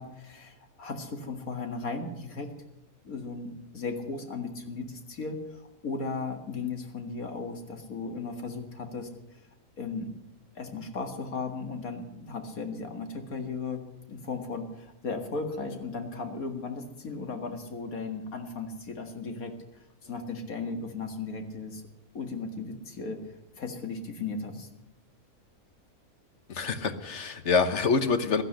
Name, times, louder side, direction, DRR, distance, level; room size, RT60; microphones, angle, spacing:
voice 1, 0.0-2.5 3.0-9.1 9.8-10.1 10.6-13.8 14.1-19.5 20.1-21.8 22.1-23.2 23.6-24.7, left 4 dB, 70° left, 4 dB, 2.3 m, -36 dB
voice 2, 26.5-28.4, left 5 dB, 50° left, 9 dB, 1.3 m, -26 dB
16.0 x 12.0 x 6.6 m, 0.88 s
omnidirectional pair, 1.6 m